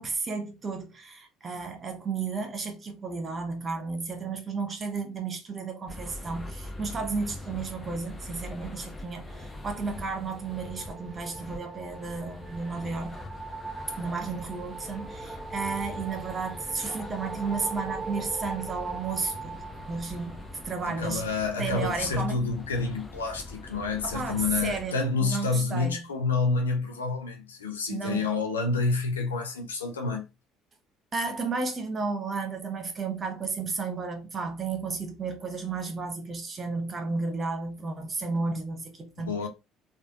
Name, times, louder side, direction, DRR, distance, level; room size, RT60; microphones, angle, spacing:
voice 1, 0.0-13.2 14.0-22.4 24.0-26.1 27.9-28.3 31.1-39.5, right 4 dB, 35° right, 1.1 m, -33 dB
sound 1, 5.9-24.9, left 2 dB, 20° left, 0.8 m, -43 dB
sound 2, 9.3-20.7, right 4 dB, 15° right, 0.6 m, -41 dB
voice 2, 20.8-30.2 39.2-39.5, left 4 dB, 85° left, 0.7 m, -28 dB
3.3 x 2.5 x 2.9 m
hypercardioid pair, 60°, 0 cm